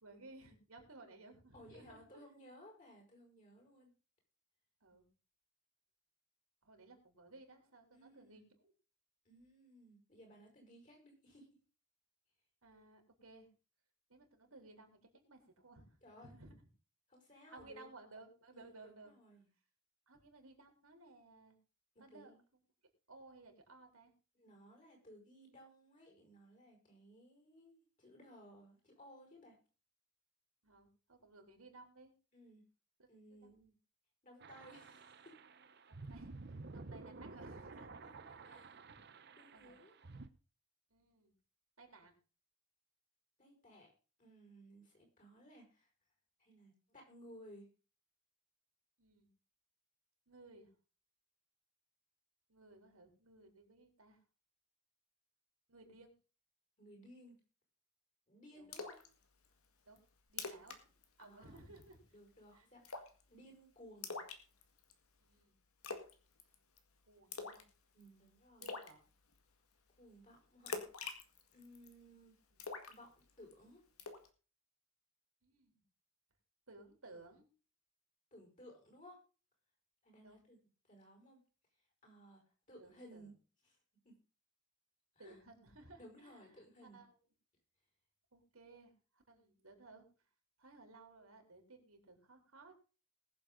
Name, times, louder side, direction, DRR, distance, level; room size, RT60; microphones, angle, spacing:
voice 1, 0.0-2.2 4.8-5.1 6.6-8.7 12.6-13.5 14.1-16.7 17.5-19.1 20.1-21.6 22.0-22.3 23.1-24.1 30.6-32.1 33.0-33.1 33.4-33.5 35.9-37.9 38.2-38.4 38.9-39.1 39.5-39.8 40.9-41.3 41.8-42.1 49.0-49.3 50.3-50.7 52.5-54.2 55.7-56.1 58.6-58.7 59.9-60.0 60.3-62.0 62.5-62.7 65.2-65.6 67.1-67.6 68.6-69.0 72.5-72.6 75.4-75.8 76.7-77.5 80.2-80.4 82.8-83.3 85.2-86.4 86.8-87.2 88.3-90.1 90.6-92.7, right 2 dB, 85° right, 3 dB, 3.8 m, -59 dB
voice 2, 1.5-3.9 7.9-8.5 9.3-11.5 16.0-16.3 17.1-17.9 18.5-19.5 22.1-22.4 24.3-29.6 32.3-32.6 33.1-33.8 34.2-35.4 38.4-38.8 39.4-40.0 43.4-43.9 44.2-45.9 46.4-47.7 56.8-57.4 58.3-59.0 61.2-61.6 62.1-63.0 63.3-64.1 67.9-68.7 70.0-70.9 71.5-72.3 72.9-73.8 78.3-79.2 80.0-80.6 80.9-81.4 82.0-82.4 82.7-83.3 83.6-83.8 84.0-84.2 85.2-85.4 86.0-87.0, equal, 35° left, 2 dB, 5.5 m, -59 dB
sound 1, 34.4-40.3, right 3 dB, 50° right, 0.8 m, -52 dB
Splash splatter, 58.7-59.1 59.4-59.5 60.0-60.1 60.3-60.8 61.0-61.2 61.6-61.9 62.8-63.2 64.0-64.9 65.8-66.1 66.4-66.8 67.3-67.7 68.0-68.1 68.6-68.9 70.7-71.9 72.6-73.5 74.0-74.3, left 4 dB, 90° left, 1.9 m, -44 dB
21.0 x 7.4 x 3.9 m, 0.35 s
head